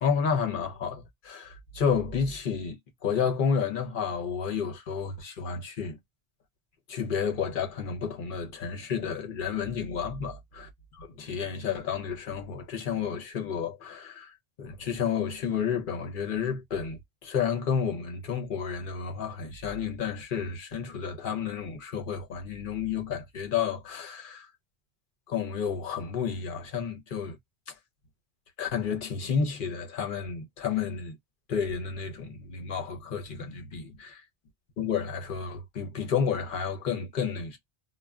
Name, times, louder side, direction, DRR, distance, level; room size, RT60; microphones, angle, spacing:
voice 1, 0.0-6.0 6.9-10.4 11.2-24.5 25.3-27.4 27.7-27.8 28.6-31.2 31.5-34.2 34.8-37.6, left 6 dB, 55° left, 0.8 m, -31 dB
2.2 x 2.2 x 3.4 m
omnidirectional pair, 1.1 m